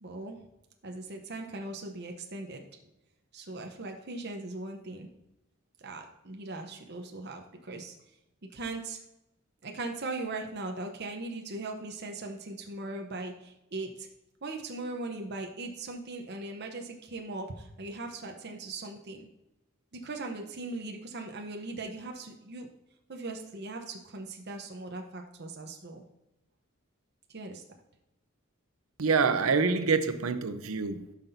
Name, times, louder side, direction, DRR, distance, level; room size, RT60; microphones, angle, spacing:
voice 1, 0.0-0.4 0.8-2.6 3.3-5.1 5.8-7.9 8.5-9.0 9.6-14.1 14.4-19.3 19.9-22.7 23.1-26.0 27.3-27.6 31.1-31.2, right 2 dB, 55° right, 0.8 m, -39 dB
voice 2, 29.0-31.1, right 5 dB, 85° right, 0.7 m, -26 dB
13.0 x 5.8 x 2.7 m
head